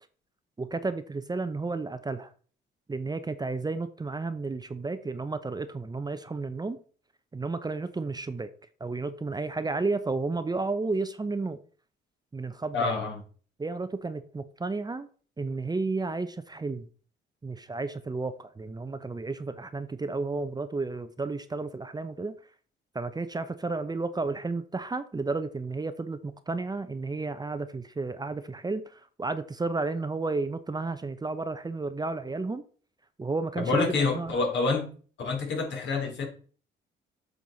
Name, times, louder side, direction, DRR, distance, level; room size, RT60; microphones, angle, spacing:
voice 1, 0.6-2.3 2.9-6.8 7.3-8.5 8.8-11.6 12.3-13.0 13.6-15.1 15.4-16.9 17.4-22.3 22.9-32.6 33.2-34.3, right 3 dB, 20° right, 0.7 m, -32 dB
voice 2, 12.7-13.2 33.5-34.9 35.2-36.3, left 4 dB, 65° left, 3.2 m, -27 dB
8.6 x 6.1 x 4.0 m
cardioid pair, 90°, 20 cm